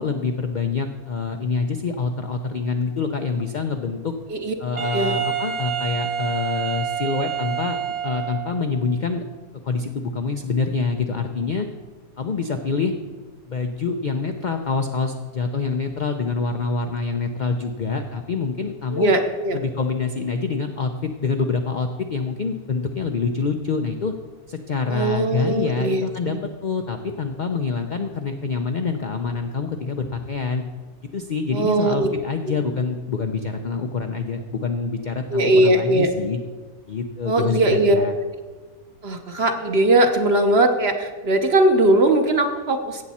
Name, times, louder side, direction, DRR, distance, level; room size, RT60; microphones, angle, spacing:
voice 1, 0.0-4.1 4.6-9.2 9.6-11.7 12.2-12.9 13.5-19.1 19.5-24.1 24.5-26.4 26.6-30.6 31.1-36.4 36.9-38.2, left 4 dB, 75° left, 5 dB, 0.4 m, -26 dB
Wind instrument woodwind instrument, 4.8-8.7, right 9 dB, 70° right, 1.5 m, -27 dB
voice 2, 18.9-19.6 24.9-26.4 31.5-32.1 32.5-32.6 35.3-36.1 37.2-38.0 39.0-43.0, right 1 dB, 50° right, 5 dB, 1.0 m, -19 dB
16.0 x 7.2 x 4.2 m, 1.3 s
omnidirectional pair, 1.6 m